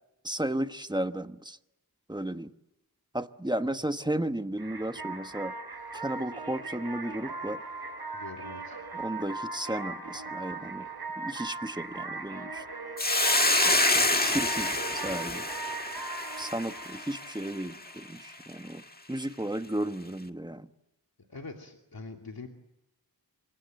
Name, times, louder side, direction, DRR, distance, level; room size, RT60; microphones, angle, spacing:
voice 1, 0.2-1.6 2.1-2.5 3.1-5.5 5.9-7.6 8.9-10.9 11.2-12.6 13.6-13.7 14.2-15.5 16.4-18.8 19.1-20.7, right 1 dB, 10° right, 1.2 m, -34 dB
sound 1, 4.6-18.0, right 3 dB, 80° right, 6.5 m, -39 dB
voice 2, 8.1-8.8 21.3-22.5, left 3 dB, 65° left, 2.8 m, -43 dB
Hiss, 13.0-17.5, left 2 dB, 25° left, 1.6 m, -27 dB
27.5 x 25.0 x 7.8 m
wide cardioid pair, 70°, 38 cm